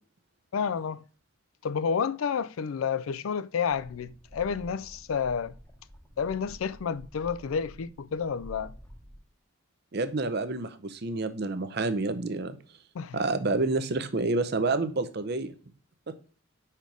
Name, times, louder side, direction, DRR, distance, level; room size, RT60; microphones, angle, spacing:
voice 1, 0.5-1.0 1.6-5.6 6.2-8.7 12.9-13.2, left 6 dB, 85° left, 0.4 m, -30 dB
sound 1, 3.6-9.2, equal, 10° left, 0.9 m, -49 dB
voice 2, 9.9-12.6 13.1-15.5 16.1-16.2, right 3 dB, 50° right, 0.6 m, -28 dB
5.2 x 4.4 x 4.5 m
head